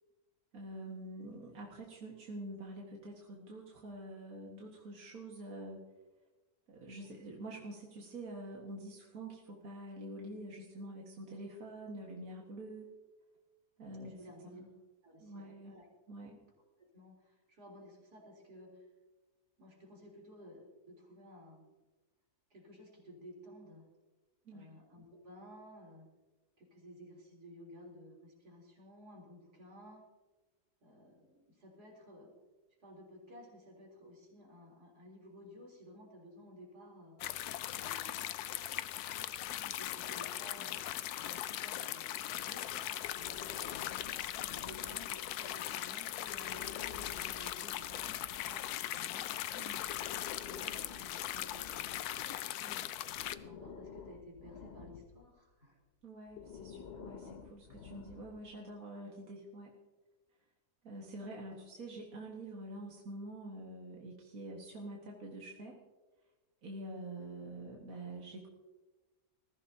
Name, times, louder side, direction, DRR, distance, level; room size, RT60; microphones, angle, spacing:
voice 1, 0.5-5.8 6.7-12.9 13.8-14.1 14.5-14.7 15.2-15.7 16.1-16.4 24.5-24.7 37.6-37.8 39.5-39.7 49.6-49.9 56.0-59.7 60.8-65.8 66.6-68.5, right 1 dB, 65° right, -2 dB, 2.2 m, -46 dB
voice 2, 14.0-14.6 15.0-15.9 16.8-18.9 19.6-21.7 22.5-23.8 24.5-26.1 26.6-30.0 30.8-32.3 32.8-37.2 37.7-38.3 39.4-40.8 41.2-42.8 43.1-44.1 44.5-49.6 50.0-50.1 50.4-53.0 53.3-55.8 61.5-61.6, equal, 90° right, -2 dB, 4.3 m, -55 dB
sound 1, 37.2-53.3, left 12 dB, 80° left, 1.1 m, -39 dB
Breathing, 43.0-45.4 46.2-48.6 49.7-52.5 53.1-55.3 56.3-58.6, left 6 dB, 50° left, 1.0 m, -51 dB
21.0 x 15.0 x 2.8 m, 1.2 s
omnidirectional pair, 1.6 m